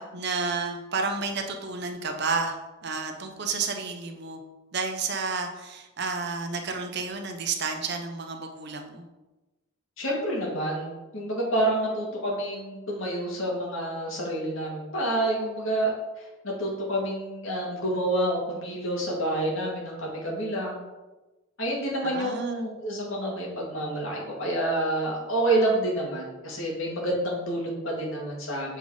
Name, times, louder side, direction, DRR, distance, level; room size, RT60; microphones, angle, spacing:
voice 1, 0.0-4.4 4.7-9.0 22.1-22.7, right 4 dB, 55° right, 5 dB, 0.8 m, -31 dB
voice 2, 10.0-20.8 21.6-28.8, right 1 dB, 75° left, -2 dB, 2.1 m, -28 dB
6.8 x 4.1 x 4.8 m, 1.1 s
head